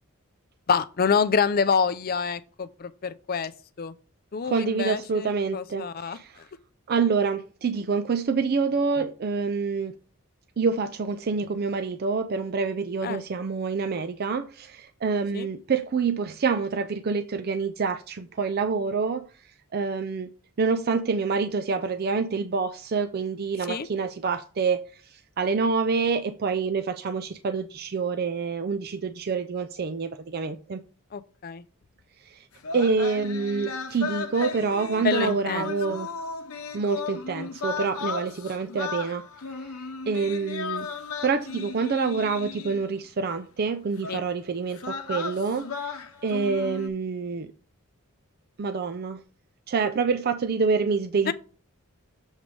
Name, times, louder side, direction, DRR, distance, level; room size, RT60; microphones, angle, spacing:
voice 1, 0.7-3.5 3.8-3.9 4.3-6.5 13.0-13.2 15.3-15.5 23.7-23.9 31.1-31.6 35.0-35.7 44.1-44.2 51.3-51.4, left 6 dB, 40° left, 0.4 m, -27 dB
voice 2, 4.4-6.4 6.9-9.9 10.6-19.3 19.7-30.8 32.3-32.4 32.7-36.1 36.7-39.2 40.1-40.9 41.2-46.0 46.2-47.5 48.6-49.2 49.7-51.3, right 5 dB, 45° right, 0.4 m, -27 dB
sound 1, 32.6-43.0 44.0-44.2 44.7-46.9, left 4 dB, 70° left, 0.8 m, -35 dB
7.2 x 3.3 x 5.2 m
head